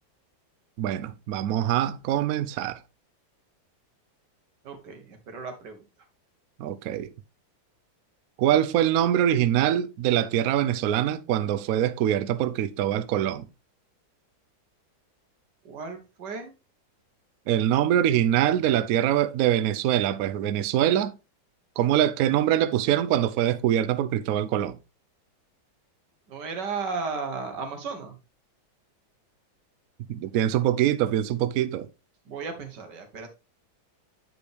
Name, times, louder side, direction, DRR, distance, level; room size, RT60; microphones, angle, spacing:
voice 1, 0.8-2.8 6.6-7.1 8.4-13.5 17.5-21.1 21.8-24.8 30.1-31.9, right 11 dB, 80° right, 0.8 m, -24 dB
voice 2, 4.6-5.8 15.7-16.5 26.3-28.2 32.3-33.3, right 4 dB, 60° right, 1.9 m, -34 dB
9.4 x 4.9 x 3.4 m
omnidirectional pair, 2.1 m